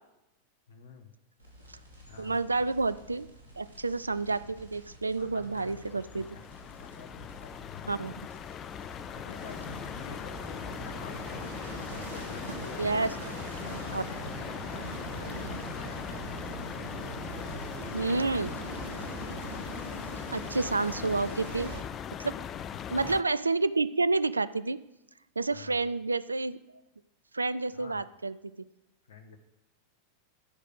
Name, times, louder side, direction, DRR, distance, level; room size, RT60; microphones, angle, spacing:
voice 1, 0.7-1.1 2.0-2.4 5.1-6.4 6.7-8.0 9.1-11.6 12.0-13.3 13.6-16.7 22.5-22.8 25.5-25.8 27.7-28.0 29.1-29.4, left 5 dB, 60° left, 7 dB, 1.0 m, -49 dB
sound 1, 1.4-19.7, equal, 85° left, 3.1 m, -53 dB
voice 2, 2.2-6.3 7.9-8.1 12.8-13.1 13.9-14.0 17.9-18.5 20.3-21.7 22.2-22.3 22.9-24.8 25.4-26.6 27.3-28.5, right 3 dB, 80° right, 16 dB, 0.3 m, -29 dB
sound 2, 5.3-23.2, left 8 dB, 30° left, 0.4 m, -40 dB
sound 3, 9.4-21.8, right 3 dB, 65° right, 1.3 m, -42 dB
13.5 x 5.0 x 6.4 m, 0.92 s
figure-of-eight pair, 90°, 0 cm